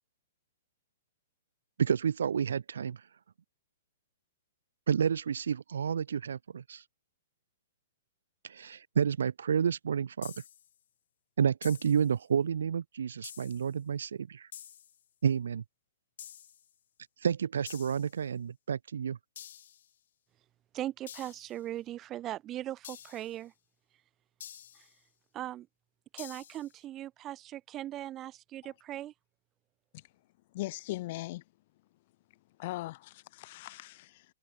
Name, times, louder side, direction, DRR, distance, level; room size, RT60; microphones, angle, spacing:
voice 1, 1.8-3.0 4.9-6.8 8.4-10.3 11.4-14.5 15.2-15.6 17.2-19.2, right 7 dB, 85° right, 0.8 m, -30 dB
sound 1, 10.2-10.7 11.6-12.1 13.2-13.7 14.5-15.0 16.2-16.7 17.7-18.2 19.3-19.9 21.1-21.6 22.8-23.4 24.4-24.9 26.2-26.7, left 10 dB, 65° left, 2.1 m, -49 dB
voice 2, 20.7-23.5 24.7-24.9 25.3-25.7 26.1-29.1, right 13 dB, 25° right, 0.9 m, -39 dB
voice 3, 30.5-31.4 32.6-34.3, left 18 dB, 45° left, 2.2 m, -39 dB
hypercardioid pair, 150°, 0 cm